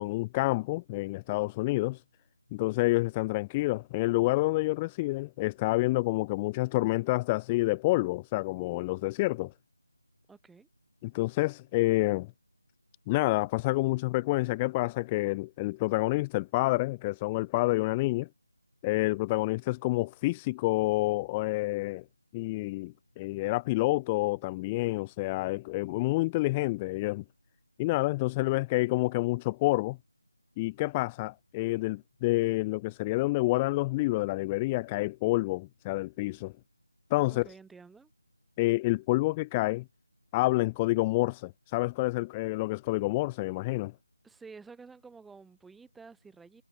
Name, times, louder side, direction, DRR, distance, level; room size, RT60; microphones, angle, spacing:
voice 1, 0.0-2.0 2.5-9.5 11.0-12.3 13.1-18.3 18.8-22.0 22.3-27.2 27.8-30.0 30.6-36.5 37.1-37.5 38.6-39.8 40.3-43.9, left 21 dB, 15° left, 1.4 m, -28 dB
voice 2, 10.3-10.7 37.3-38.1 44.2-46.6, right 4 dB, 5° right, 4.8 m, -51 dB
figure-of-eight pair, 165°, 0 cm